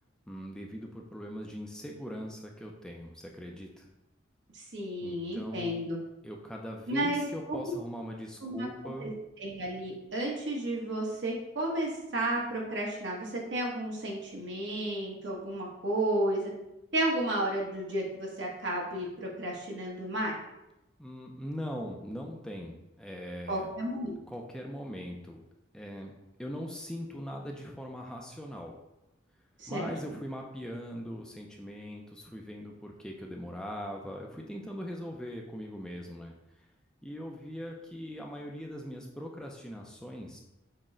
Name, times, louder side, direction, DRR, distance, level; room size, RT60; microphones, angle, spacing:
voice 1, 0.3-3.9 5.0-5.8 6.2-9.1 21.0-23.7 24.3-25.4 25.7-26.1 26.4-28.7 29.7-36.7 37.0-40.4, equal, 5° left, 0 dB, 0.3 m, -41 dB
voice 2, 4.5-6.0 6.9-7.2 7.5-7.6 8.4-9.1 9.4-16.5 16.9-20.3 23.5-24.1 29.6-29.9, right 1 dB, 70° right, -2 dB, 1.1 m, -32 dB
6.0 x 2.1 x 3.7 m, 0.93 s
head